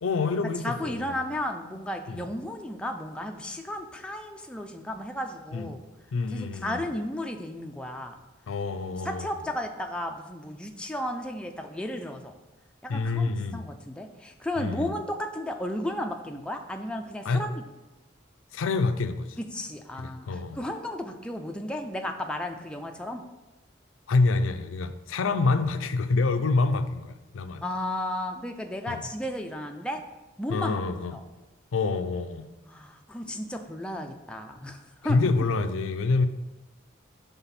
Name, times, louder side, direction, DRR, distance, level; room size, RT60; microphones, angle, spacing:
voice 1, 0.0-1.3 2.1-2.3 5.5-5.7 6.1-6.9 8.5-9.3 12.9-13.7 14.6-14.9 17.2-17.4 18.5-19.4 20.0-20.7 24.1-27.6 28.9-29.0 30.5-31.1 31.7-32.5 35.0-36.3, left 3 dB, 85° left, 9 dB, 0.4 m, -27 dB
voice 2, 0.6-5.8 6.3-8.2 9.0-12.4 12.8-13.3 13.5-17.6 19.5-20.3 20.6-23.2 27.6-30.0 30.4-30.7 31.1-31.2 32.7-35.2, left 1 dB, 5° left, 3 dB, 0.3 m, -34 dB
5.6 x 3.5 x 5.7 m, 1.1 s
head